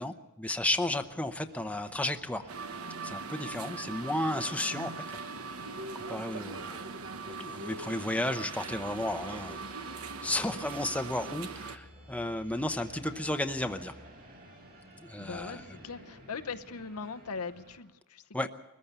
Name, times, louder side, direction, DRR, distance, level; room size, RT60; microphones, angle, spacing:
voice 1, 0.0-2.5 3.0-5.0 6.1-6.9 7.3-9.6 9.9-13.9 15.0-15.6 18.3-18.5, left 1 dB, 5° left, 7 dB, 0.8 m, -33 dB
sound 1, 0.7-17.8, right 1 dB, 40° right, 5.4 m, -54 dB
sound 2, 2.5-11.8, right 4 dB, 75° right, 1.1 m, -41 dB
Musical instrument, 8.6-14.2, equal, 25° right, 2.6 m, -55 dB
voice 2, 15.2-18.5, left 5 dB, 80° left, 10 dB, 0.9 m, -40 dB
22.0 x 14.5 x 8.2 m, 1.1 s
head